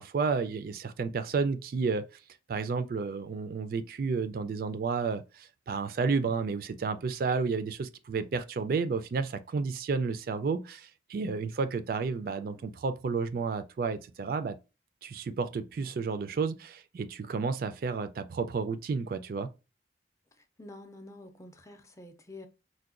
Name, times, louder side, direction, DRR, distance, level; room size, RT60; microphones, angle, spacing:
voice 1, 0.0-2.1 2.5-14.6 15.0-19.5, right 4 dB, 55° right, 0.3 m, -31 dB
voice 2, 12.1-12.6 20.6-22.5, left 2 dB, 15° left, 0.4 m, -49 dB
4.6 x 2.1 x 2.4 m
head